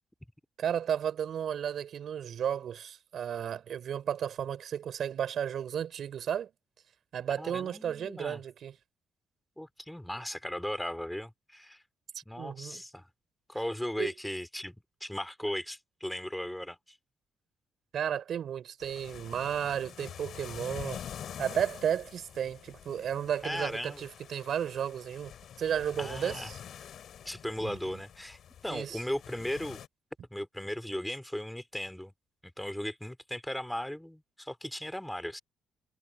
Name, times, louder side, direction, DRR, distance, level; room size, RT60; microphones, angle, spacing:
voice 1, 0.6-6.5 7.1-8.8 12.4-12.8 14.0-14.1 17.9-21.0 21.4-25.3 25.6-26.6 27.6-28.0 28.7-29.0, right 9 dB, 65° right, 6.0 m, -33 dB
voice 2, 7.4-8.4 9.6-11.8 12.3-13.1 13.5-14.7 15.0-17.0 23.4-24.0 26.0-26.5 27.2-29.8 30.3-32.1 32.6-35.4, left 1 dB, 5° left, 3.0 m, -37 dB
sound 1, 18.8-29.9, left 9 dB, 65° left, 6.5 m, -46 dB
cardioid pair, 90°, 0 cm